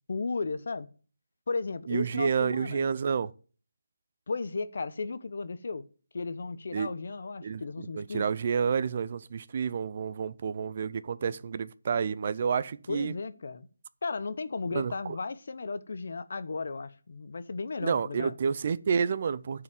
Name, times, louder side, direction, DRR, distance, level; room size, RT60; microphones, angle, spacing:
voice 1, 0.1-0.9 1.5-2.8 4.3-5.8 6.1-8.2 12.9-13.7 14.0-18.4, left 4 dB, 55° left, 0.8 m, -35 dB
voice 2, 1.9-3.3 6.7-6.9 7.4-13.1 14.7-15.2 17.8-19.6, right 6 dB, 40° right, 0.4 m, -29 dB
9.8 x 4.7 x 7.7 m
figure-of-eight pair, 165°, 0 cm